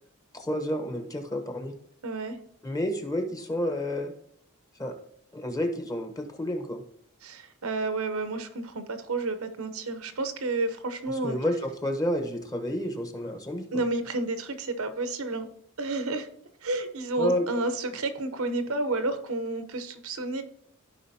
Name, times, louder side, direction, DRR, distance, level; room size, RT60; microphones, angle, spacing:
voice 1, 0.3-1.7 2.6-4.1 4.8-5.0 5.3-6.8 11.1-13.8 17.2-17.4, left 1 dB, 15° left, 5 dB, 1.0 m, -30 dB
voice 2, 2.0-2.4 7.2-11.4 13.7-15.5 15.8-16.3 16.6-20.4, right 2 dB, 80° right, 9 dB, 0.9 m, -30 dB
15.0 x 5.1 x 2.8 m, 0.66 s
head